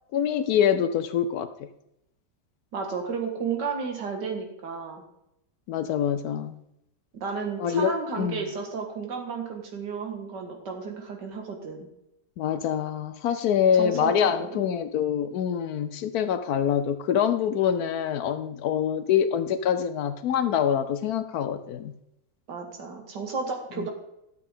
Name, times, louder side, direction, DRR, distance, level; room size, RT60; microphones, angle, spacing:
voice 1, 0.1-1.7 5.7-6.5 7.6-8.4 12.4-21.9 23.8-23.9, left 8 dB, 70° left, 11 dB, 1.0 m, -25 dB
voice 2, 2.7-5.0 7.1-11.9 13.8-14.7 22.5-23.9, right 5 dB, 80° right, 3 dB, 2.2 m, -32 dB
12.0 x 7.7 x 3.7 m, 0.82 s
omnidirectional pair, 1.8 m